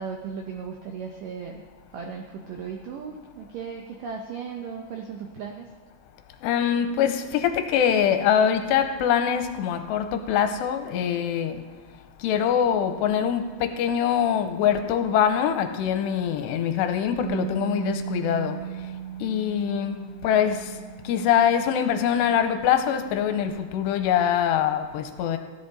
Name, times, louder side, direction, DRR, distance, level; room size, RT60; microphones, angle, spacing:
voice 1, 0.0-1.6 1.9-5.7, right 6 dB, 80° right, 2 dB, 1.9 m, -36 dB
voice 2, 6.4-11.7 12.2-18.9 19.2-20.8 21.0-25.4, left 8 dB, 85° left, 7 dB, 2.8 m, -24 dB
Bass guitar, 17.2-23.5, right 11 dB, 60° right, 2.2 m, -37 dB
16.0 x 10.0 x 4.1 m, 1.5 s
omnidirectional pair, 5.0 m